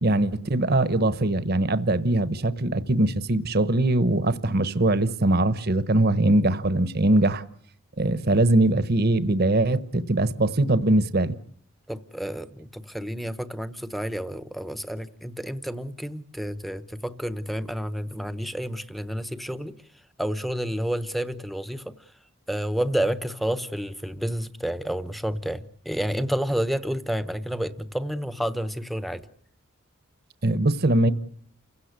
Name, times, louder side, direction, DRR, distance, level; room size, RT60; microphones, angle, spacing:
voice 1, 0.0-7.4 8.0-11.4 30.4-31.1, right 2 dB, 50° right, 1.1 m, -22 dB
voice 2, 11.9-19.8 20.2-21.9 22.5-29.3, equal, ahead, 1.0 m, -30 dB
29.5 x 16.5 x 8.2 m
head